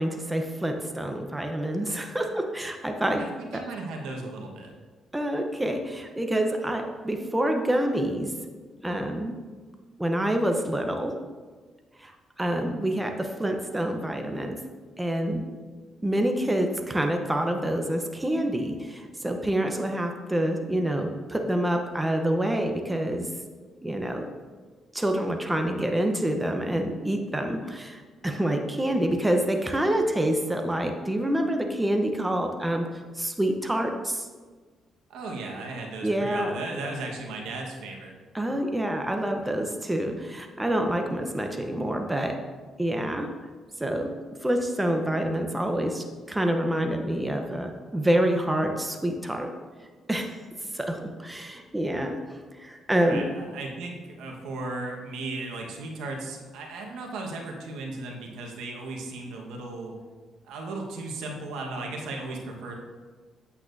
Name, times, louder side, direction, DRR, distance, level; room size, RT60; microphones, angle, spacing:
voice 1, 0.0-3.3 3.5-3.6 5.1-8.3 8.8-9.3 10.0-11.2 12.0-12.1 12.4-14.6 15.0-15.4 16.0-23.3 23.8-24.3 24.9-34.3 36.0-36.6 38.3-42.4 42.8-43.3 43.8-49.5 50.1-50.3 50.7-53.3, right 1 dB, 10° right, 4 dB, 0.8 m, -27 dB
voice 2, 3.1-4.7 35.1-38.1 53.0-60.0 60.4-62.8, right 2 dB, 90° right, 1 dB, 1.3 m, -36 dB
8.4 x 8.4 x 2.7 m, 1.4 s
cardioid pair, 90°, 0 cm